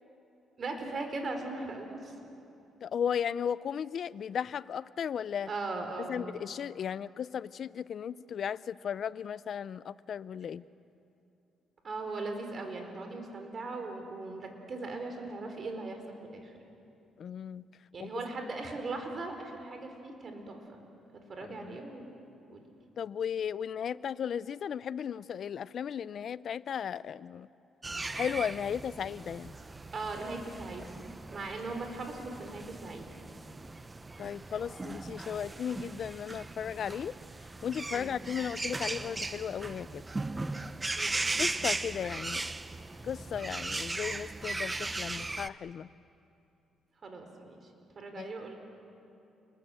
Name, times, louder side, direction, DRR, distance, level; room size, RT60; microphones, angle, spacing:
voice 1, 0.6-2.1 5.4-6.2 11.8-16.0 16.3-16.5 17.9-20.8 21.3-22.1 22.5-22.6 29.9-31.0 31.3-33.1 37.9-38.2 41.0-41.5 47.0-47.6 47.9-48.5, right 3 dB, 45° right, 4 dB, 4.5 m, -39 dB
voice 2, 2.8-5.5 6.1-10.6 17.2-17.6 18.0-18.1 21.5-21.8 23.0-27.5 28.1-29.5 34.2-37.1 37.6-40.0 41.4-42.4 43.0-45.9 48.2-48.3, left 8 dB, 60° left, 18 dB, 0.6 m, -35 dB
sound 1, 27.8-45.5, right 3 dB, 20° right, 0.8 m, -38 dB
29.0 x 21.0 x 7.8 m, 2.8 s
cardioid pair, 90°, 0 cm